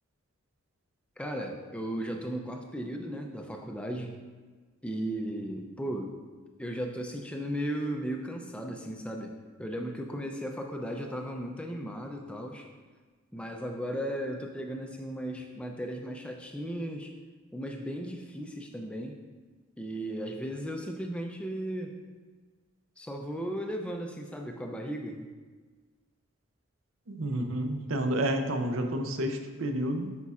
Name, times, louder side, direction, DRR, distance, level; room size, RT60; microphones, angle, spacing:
voice 1, 1.2-4.1 4.8-6.1 6.6-9.3 9.6-12.7 13.3-17.1 17.5-19.2 19.8-22.0 23.0-25.3, equal, 5° left, 2 dB, 0.4 m, -36 dB
voice 2, 27.1-30.2, right 1 dB, 65° right, 5 dB, 0.6 m, -30 dB
8.1 x 5.4 x 2.4 m, 1.4 s
head